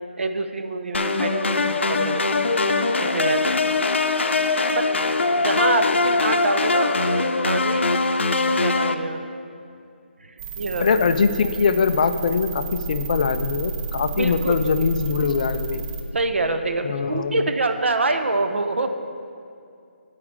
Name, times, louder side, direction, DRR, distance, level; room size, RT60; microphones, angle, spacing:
voice 1, 0.2-2.2 3.1-3.5 4.7-4.9 5.4-7.9 8.5-9.2 10.2-11.1 14.1-14.5 16.1-18.9, right 2 dB, 90° right, 7 dB, 0.8 m, -26 dB
sound 1, 0.9-8.9, left 3 dB, 90° left, 0.6 m, -22 dB
sound 2, 10.4-16.0, right 4 dB, 25° right, 0.8 m, -32 dB
voice 2, 10.8-15.9 16.8-17.4, left 5 dB, 40° left, 9 dB, 0.4 m, -22 dB
9.6 x 4.9 x 7.2 m, 2.4 s
hypercardioid pair, 165°, 6 cm